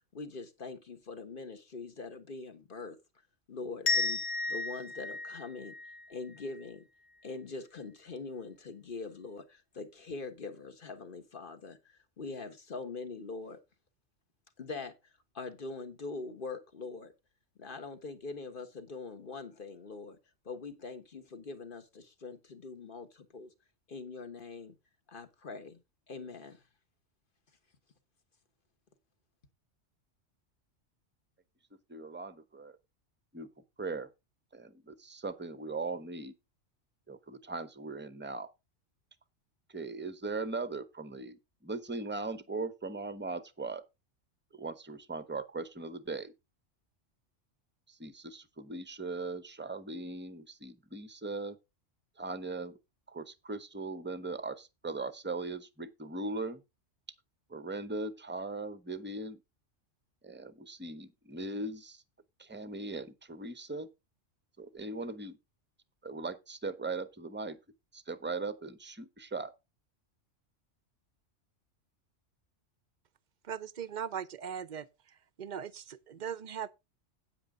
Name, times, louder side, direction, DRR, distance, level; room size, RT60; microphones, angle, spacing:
voice 1, 0.1-3.0 3.5-4.2 4.5-5.7 6.1-6.8 7.2-11.8 12.2-13.6 14.6-14.9 15.3-17.1 17.6-20.2 20.4-23.5 23.9-24.7 25.1-25.8 26.1-26.6, left 4 dB, 45° left, 1.5 m, -43 dB
sound 1, 3.9-6.6, left 3 dB, 90° left, 1.8 m, -34 dB
voice 2, 31.9-32.8 33.3-33.5 33.8-34.1 34.5-36.3 37.1-38.5 39.7-43.8 44.5-46.3 47.9-51.6 52.2-52.8 53.1-56.6 57.5-59.4 60.2-62.0 62.4-63.9 64.6-65.4 66.0-67.6 67.9-69.5, right 3 dB, 10° right, 0.7 m, -39 dB
voice 3, 73.5-74.9 75.4-76.7, right 8 dB, 50° right, 0.6 m, -39 dB
9.7 x 8.7 x 3.8 m
omnidirectional pair, 1.3 m